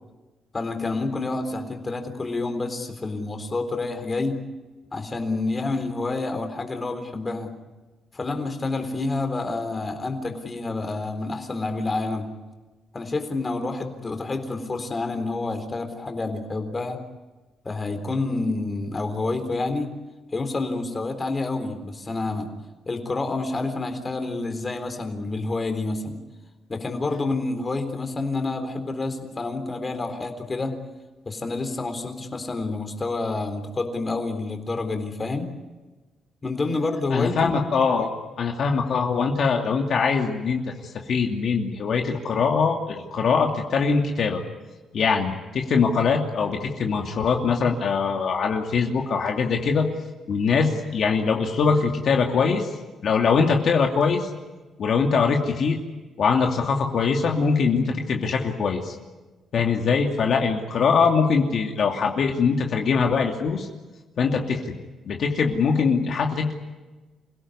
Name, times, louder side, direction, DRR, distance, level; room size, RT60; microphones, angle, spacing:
voice 1, 0.5-4.4 4.9-7.5 8.1-12.3 12.9-17.0 17.6-19.9 20.3-22.5 22.9-26.2 26.7-30.7 31.3-35.5 36.4-37.5, left 3 dB, 25° left, 6 dB, 3.9 m, -28 dB
voice 2, 37.1-38.1 38.4-44.4 44.9-49.9 50.3-52.7 53.0-54.3 54.8-55.8 56.2-59.0 59.5-63.7 64.2-64.7 65.1-66.5, left 5 dB, 60° left, 2 dB, 2.6 m, -22 dB
28.0 x 17.0 x 9.8 m, 1.2 s
cardioid pair, 110°, 0 cm